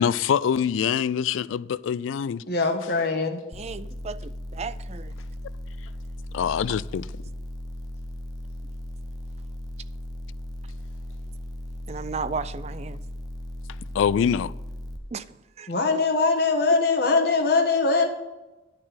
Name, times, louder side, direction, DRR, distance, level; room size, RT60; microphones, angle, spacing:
voice 1, 0.0-2.4 6.3-7.1 13.9-14.5, left 8 dB, 85° left, 0.3 m, -24 dB
voice 2, 2.5-3.4 15.7-18.1, left 3 dB, 55° left, 1.3 m, -22 dB
sound 1, 3.5-15.0, left 1 dB, 20° left, 0.7 m, -37 dB
voice 3, 3.5-5.1 11.9-13.0 15.1-15.2 15.6-15.7, right 5 dB, 35° right, 0.3 m, -34 dB
10.5 x 4.3 x 7.5 m
head